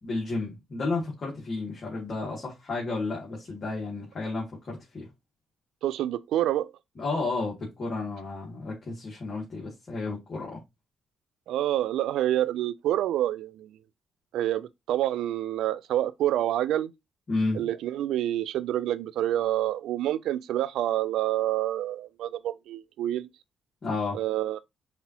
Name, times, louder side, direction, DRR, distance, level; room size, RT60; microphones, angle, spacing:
voice 1, 0.0-5.1 7.0-10.6 17.3-17.7 23.8-24.2, left 3 dB, 45° left, 2.0 m, -32 dB
voice 2, 5.8-6.7 11.5-13.8 14.3-16.9 17.5-23.3 24.1-24.6, right 13 dB, 85° right, 0.3 m, -27 dB
5.3 x 2.8 x 2.9 m
cardioid pair, 90°, 0 cm